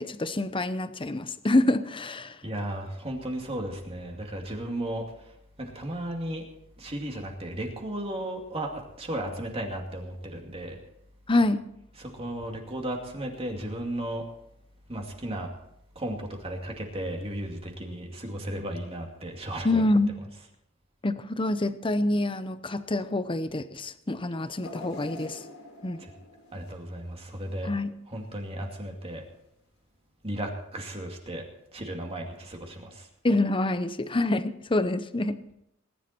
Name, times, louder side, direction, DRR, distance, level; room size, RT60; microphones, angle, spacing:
voice 1, 0.0-2.4 11.3-11.6 19.6-20.1 21.0-25.4 25.8-26.0 27.6-27.9 33.2-35.6, left 2 dB, 25° left, 12 dB, 0.7 m, -26 dB
voice 2, 2.4-6.5 6.8-10.8 11.9-14.3 14.9-15.5 16.0-19.8 20.2-20.5 26.0-26.1 26.5-27.7 28.1-29.2 30.2-31.4 31.7-33.1, right 1 dB, 30° right, 1 dB, 2.4 m, -35 dB
sound 1, 24.6-27.8 28.2-28.4 29.4-29.5, left 1 dB, 85° left, 3.7 m, -45 dB
20.0 x 11.0 x 4.4 m, 0.78 s
head